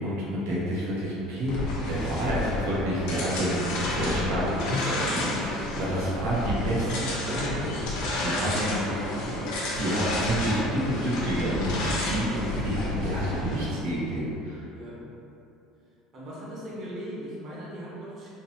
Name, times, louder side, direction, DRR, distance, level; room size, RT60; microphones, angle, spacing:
voice 1, 0.0-1.5 1.9-8.8 9.7-14.6, equal, 80° right, -7 dB, 0.9 m, -29 dB
sound 1, 1.5-13.7, left 1 dB, 70° left, 0.7 m, -30 dB
voice 2, 16.1-18.3, equal, 35° right, -7 dB, 0.9 m, -38 dB
3.7 x 2.8 x 2.8 m, 2.8 s
cardioid pair, 160°, 0 cm